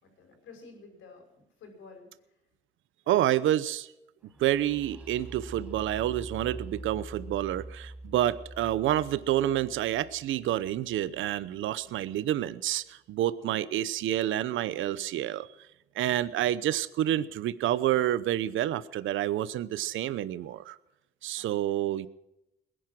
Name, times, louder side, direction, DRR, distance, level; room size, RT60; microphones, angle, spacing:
voice 1, 0.0-2.1 3.0-3.2 13.4-13.7 21.3-21.6, left 4 dB, 80° left, 4 dB, 5.8 m, -51 dB
voice 2, 3.1-3.9 4.4-15.5 16.0-20.8 21.2-22.1, right 12 dB, 80° right, 16 dB, 0.8 m, -28 dB
sound 1, 4.3-12.1, right 1 dB, 5° right, 0.7 m, -45 dB
20.0 x 11.0 x 6.1 m, 0.91 s
cardioid pair, 90°, 20 cm